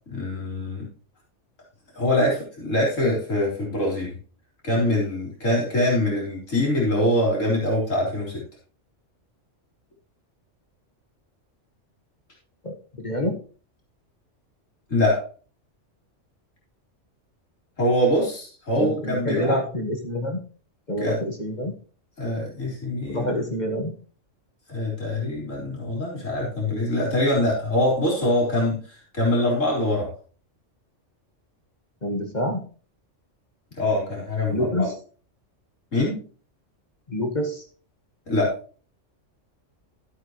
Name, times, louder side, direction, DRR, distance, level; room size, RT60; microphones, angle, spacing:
voice 1, 0.1-0.9 2.0-4.2 4.6-8.4 14.9-15.2 17.8-19.6 21.0-21.2 22.2-23.3 24.7-30.1 33.8-34.9 35.9-36.2 38.3-38.6, left 1 dB, 90° left, -3 dB, 4.2 m, -24 dB
voice 2, 12.6-13.4 18.8-20.4 20.9-21.7 23.1-24.0 32.0-32.6 34.5-34.9 37.1-37.6, equal, 35° left, 3 dB, 1.7 m, -27 dB
14.0 x 8.1 x 3.2 m, 0.39 s
omnidirectional pair, 1.3 m